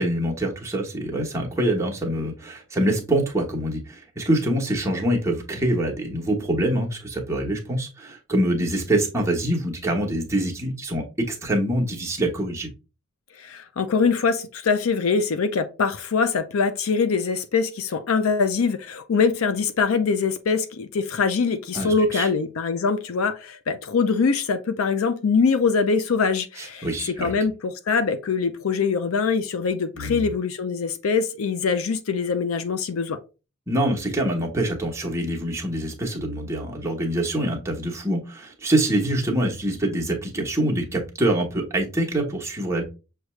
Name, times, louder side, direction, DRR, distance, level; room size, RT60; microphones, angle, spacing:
voice 1, 0.0-12.7 21.7-22.3 26.6-27.3 29.9-30.3 33.7-42.8, right 1 dB, 15° right, 1.0 m, -25 dB
voice 2, 13.4-26.9 27.2-33.2, left 5 dB, 80° left, 0.5 m, -23 dB
6.3 x 2.3 x 3.1 m
head